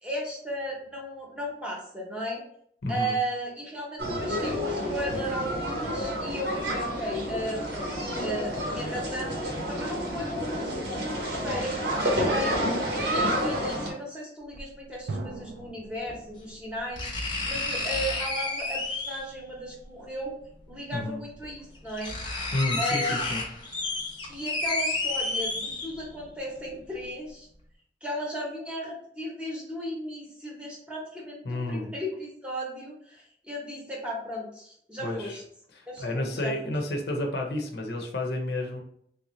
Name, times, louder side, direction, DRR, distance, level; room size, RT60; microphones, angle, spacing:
voice 1, 0.0-2.4 2.9-7.9 8.2-9.4 9.7-12.7 13.0-17.1 17.4-20.3 20.7-22.2 22.8-23.2 24.3-27.5 28.0-35.4 35.9-36.7, equal, 5° right, -3 dB, 0.8 m, -35 dB
voice 2, 2.8-3.2 20.9-21.2 22.5-23.4 31.4-31.9 35.0-35.4 35.7-38.8, left 1 dB, 65° left, 1 dB, 0.6 m, -31 dB
sound 1, 4.0-13.9, equal, 75° right, 1.0 m, -29 dB
sound 2, 14.5-14.6 16.1-16.2 17.0-19.3 20.7-20.8 21.4-21.5 21.7-26.2 26.6-26.7, left 2 dB, 25° left, 0.7 m, -31 dB
sound 3, 15.1-16.9, right 3 dB, 90° right, 0.4 m, -41 dB
3.4 x 2.6 x 3.0 m, 0.69 s
head